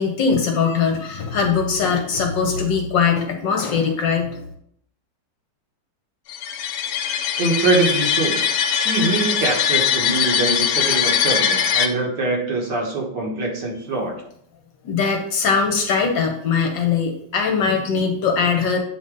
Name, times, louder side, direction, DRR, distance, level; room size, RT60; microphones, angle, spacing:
voice 1, 0.0-4.4 14.8-18.8, left 5 dB, 65° left, 3 dB, 1.4 m, -21 dB
Horror Violin Tremolo Cluster B, 6.3-11.9, left 8 dB, 80° left, 1.4 m, -21 dB
voice 2, 7.4-8.4 8.7-14.1, right 3 dB, 55° right, -1 dB, 1.8 m, -23 dB
8.0 x 3.9 x 3.7 m, 0.68 s
omnidirectional pair, 2.3 m